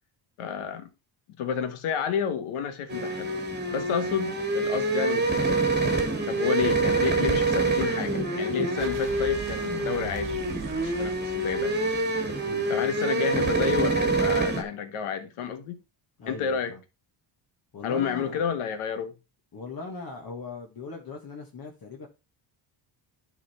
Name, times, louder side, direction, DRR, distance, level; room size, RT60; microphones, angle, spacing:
voice 1, 0.4-0.9 1.4-3.3 3.7-5.6 6.3-10.3 10.8-11.7 12.7-15.8 16.3-16.8 17.8-19.1, left 7 dB, 85° left, 1.5 m, -30 dB
sound 1, 2.9-14.6, right 2 dB, 20° right, 1.7 m, -26 dB
sound 2, 8.8-12.5, right 6 dB, 40° right, 1.4 m, -40 dB
voice 2, 16.2-16.8 17.7-18.5 19.5-22.1, left 4 dB, 45° left, 1.7 m, -40 dB
11.5 x 3.9 x 4.3 m
cardioid pair, 100°, 48 cm